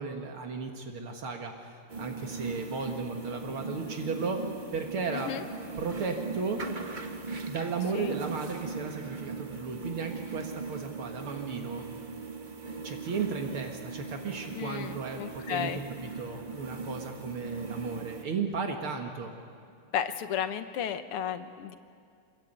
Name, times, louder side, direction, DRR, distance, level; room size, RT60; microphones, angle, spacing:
voice 1, 0.0-1.7 2.0-4.4 4.7-5.3 5.8-6.6 7.5-11.8 12.6-15.7 16.0-19.3, right 5 dB, 75° right, 3 dB, 2.4 m, -35 dB
sound 1, 1.9-18.2, right 3 dB, 30° right, 0.9 m, -39 dB
voice 2, 5.1-5.4 7.9-8.2 14.5-15.8 19.9-21.8, left 9 dB, 90° left, 9 dB, 2.0 m, -33 dB
26.5 x 22.5 x 8.8 m, 2.3 s
omnidirectional pair, 2.4 m